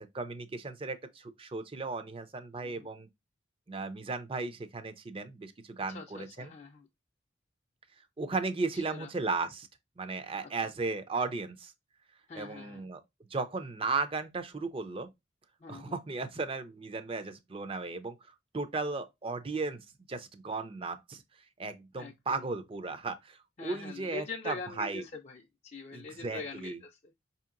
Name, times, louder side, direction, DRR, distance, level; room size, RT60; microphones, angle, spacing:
voice 1, 0.0-3.1 3.7-6.5 8.2-9.7 10.0-11.7 12.4-13.0 13.3-15.1 15.7-18.2 18.5-21.2 21.6-25.0 25.9-26.8, right 3 dB, 30° right, 0.4 m, -35 dB
voice 2, 5.9-6.9 8.7-9.1 12.3-12.8 15.6-16.0 22.0-22.4 23.6-27.0, left 4 dB, 35° left, 0.4 m, -43 dB
5.1 x 2.8 x 2.4 m
head